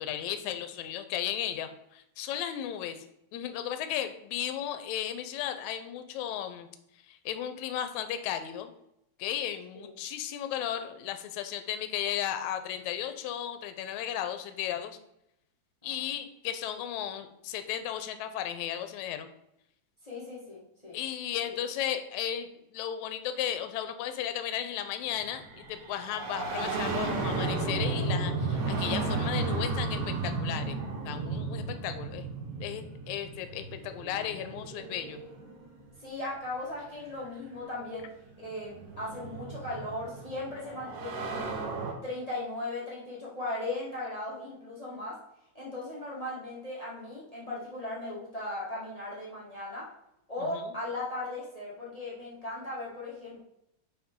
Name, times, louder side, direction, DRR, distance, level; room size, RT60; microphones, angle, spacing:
voice 1, 0.0-3.1 3.3-6.7 7.1-8.7 9.2-15.0 15.8-19.3 20.9-30.8 31.1-32.3 32.6-35.2 50.4-50.7, left 10 dB, 75° left, 9 dB, 1.9 m, -35 dB
voice 2, 20.0-21.0 21.5-21.6 36.0-38.1 38.4-41.4 42.0-45.2 45.5-49.9 50.3-53.4, left 2 dB, 45° left, -6 dB, 0.4 m, -37 dB
sound 1, 25.2-35.8 37.1-37.2 38.2-41.9, right 3 dB, 90° right, 2.6 m, -34 dB
6.0 x 5.3 x 3.7 m, 0.80 s
omnidirectional pair, 3.6 m